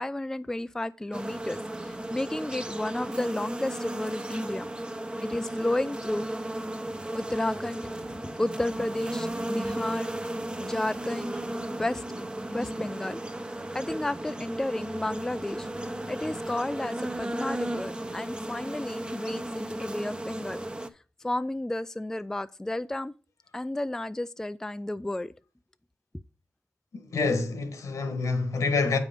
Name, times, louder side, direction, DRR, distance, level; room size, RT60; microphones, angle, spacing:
voice 1, 0.0-4.7 5.2-6.3 7.1-7.9 8.2-10.1 10.6-11.3 11.7-12.3 12.5-13.2 13.7-15.7 16.1-20.6 21.2-23.1 23.5-25.3, left 1 dB, 10° left, 0.3 m, -32 dB
sound 1, 1.1-20.9, right 1 dB, 15° right, 0.7 m, -35 dB
voice 2, 27.0-29.0, left 4 dB, 75° left, 1.4 m, -27 dB
8.0 x 4.9 x 5.2 m
cardioid pair, 75°, 5 cm